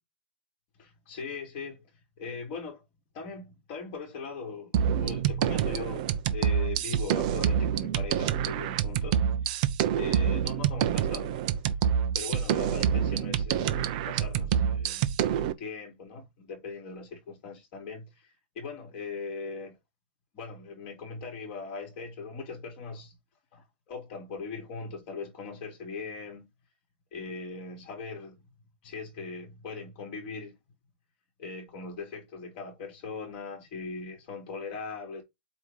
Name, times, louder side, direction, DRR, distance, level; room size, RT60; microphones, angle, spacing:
voice 1, 0.8-1.8 2.2-2.8 3.1-9.2 9.9-11.4 12.1-19.8 20.3-23.2 23.5-26.5 27.1-28.5 28.8-30.6 31.4-35.2, left 4 dB, 35° left, 3.9 m, -40 dB
sound 1, 4.7-15.5, right 9 dB, 40° right, 0.8 m, -27 dB
8.5 x 3.1 x 5.5 m
hypercardioid pair, 155°, 6 cm